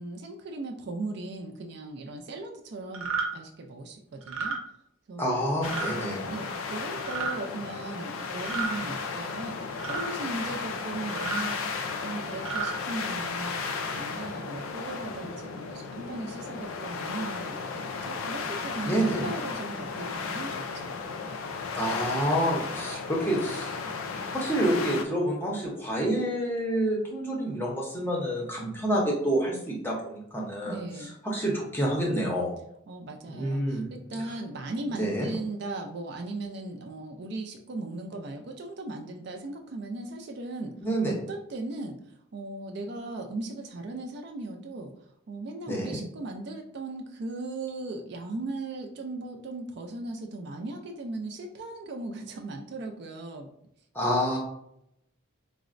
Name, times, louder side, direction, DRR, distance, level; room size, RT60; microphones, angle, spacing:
voice 1, 0.0-3.1 3.3-4.6 5.1-5.3 6.2-9.6 9.9-20.9 30.6-31.1 32.9-40.7 41.0-42.0 42.3-44.9 45.3-53.5, right 2 dB, 50° right, 4 dB, 0.3 m, -37 dB
sound 1, 2.9-3.3 4.2-4.6 5.6-5.9 7.0-7.3 8.4-8.8 9.8-10.1 11.1-11.4 12.3-12.7, right 5 dB, 85° right, 0.8 m, -31 dB
voice 2, 5.2-6.3 18.8-19.3 21.7-23.8 24.3-32.5 33.3-34.4 34.9-35.3 40.8-41.1 45.7-46.0 53.9-54.4, right 1 dB, 10° left, -2 dB, 0.6 m, -28 dB
sound 2, 5.6-25.0, left 4 dB, 75° left, 0.3 m, -35 dB
4.0 x 2.0 x 2.5 m, 0.75 s
head